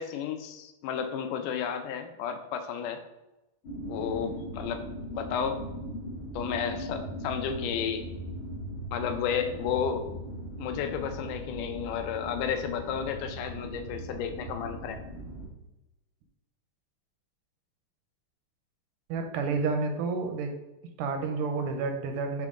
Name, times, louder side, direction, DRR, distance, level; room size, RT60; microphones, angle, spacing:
voice 1, 0.0-3.0 3.9-4.8 5.1-5.6 6.3-8.0 8.9-10.1 10.6-15.0, left 8 dB, 80° left, 7 dB, 2.1 m, -32 dB
sound 1, 3.6-15.5, right 1 dB, 30° left, 1.3 m, -39 dB
voice 2, 19.1-20.6 21.0-22.5, right 4 dB, 85° right, 5 dB, 2.2 m, -30 dB
8.5 x 3.8 x 3.7 m, 0.97 s
omnidirectional pair, 3.8 m